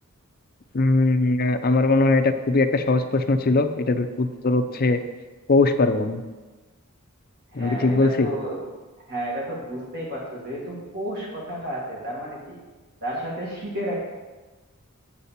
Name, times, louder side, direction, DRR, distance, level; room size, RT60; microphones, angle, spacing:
voice 1, 0.7-5.0 5.5-6.2 7.5-8.3, left 3 dB, 40° left, 8 dB, 0.5 m, -20 dB
voice 2, 7.5-8.6 9.1-12.6 13.0-14.0, equal, 45° right, -4 dB, 1.9 m, -31 dB
8.1 x 7.5 x 4.2 m, 1.2 s
head